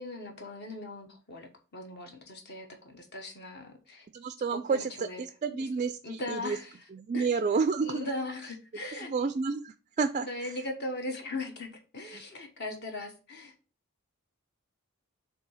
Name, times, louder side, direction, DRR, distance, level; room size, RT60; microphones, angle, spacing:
voice 1, 0.0-4.1 4.5-5.2 5.5-5.7 6.0-6.8 7.1-7.3 7.8-9.1 10.2-13.5, left 2 dB, 50° left, 3 dB, 1.2 m, -39 dB
voice 2, 4.1-6.6 6.9-8.1 9.1-10.5, right 5 dB, 35° right, 10 dB, 0.3 m, -30 dB
7.3 x 2.8 x 5.6 m, 0.36 s
head